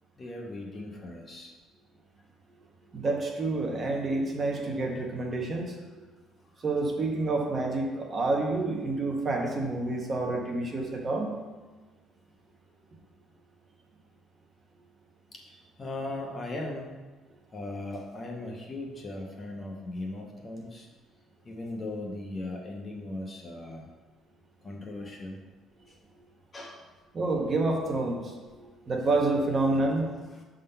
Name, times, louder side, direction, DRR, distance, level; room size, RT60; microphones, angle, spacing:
voice 1, 0.2-1.5 15.3-15.4 15.8-17.0 17.5-20.9 21.4-23.9 24.6-25.4 26.5-26.8 30.3-30.4, left 2 dB, 20° left, 1 dB, 0.7 m, -38 dB
voice 2, 2.9-6.0 6.6-11.4 27.1-30.1, right 2 dB, 25° right, 1 dB, 0.8 m, -28 dB
6.4 x 3.8 x 5.6 m, 1.3 s
cardioid pair, 175°, 0 cm